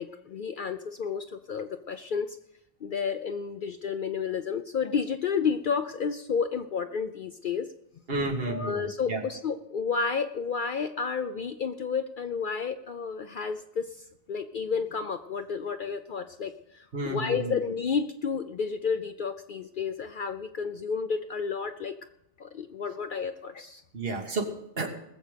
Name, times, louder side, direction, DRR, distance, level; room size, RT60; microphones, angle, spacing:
voice 1, 0.0-2.4 2.8-7.7 8.4-21.9 22.4-23.8, left 6 dB, 55° left, 9 dB, 0.6 m, -31 dB
voice 2, 8.1-9.2 16.9-17.6 23.9-24.9, right 2 dB, 60° right, 1 dB, 1.9 m, -31 dB
20.0 x 7.7 x 5.1 m, 0.82 s
omnidirectional pair, 1.1 m